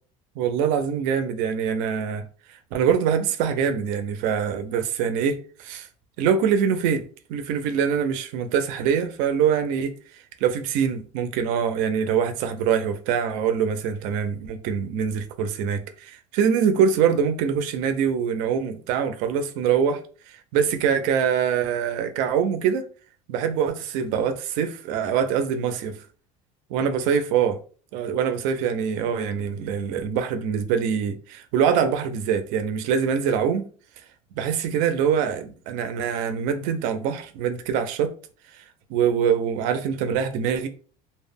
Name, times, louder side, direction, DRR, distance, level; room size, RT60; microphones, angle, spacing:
voice 1, 0.4-2.2 2.7-5.9 6.2-9.9 10.4-20.0 20.3-22.8 23.3-26.0 26.7-27.6 27.9-33.6 34.4-38.1 38.9-40.7, right 7 dB, 60° right, 0.4 m, -24 dB
2.1 x 2.0 x 3.4 m
cardioid pair, 175°, 16 cm